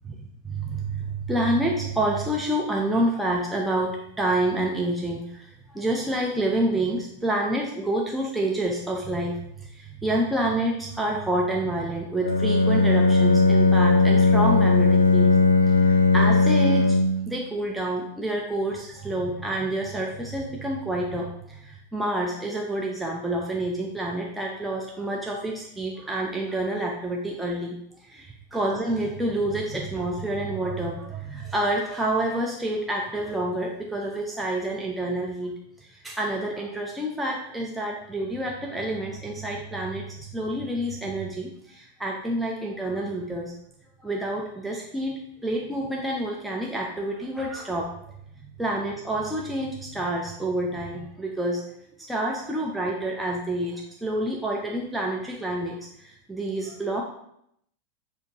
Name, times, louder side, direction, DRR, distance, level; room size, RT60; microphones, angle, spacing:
voice 1, 0.4-15.3 15.7-17.0 17.3-43.5 44.0-47.9 48.4-51.6 52.1-57.0, right 1 dB, 5° right, -2 dB, 0.6 m, -28 dB
Bowed string instrument, 12.2-17.3, left 3 dB, 85° left, 0.4 m, -18 dB
6.5 x 2.7 x 2.9 m, 0.74 s
figure-of-eight pair, 90°, 0 cm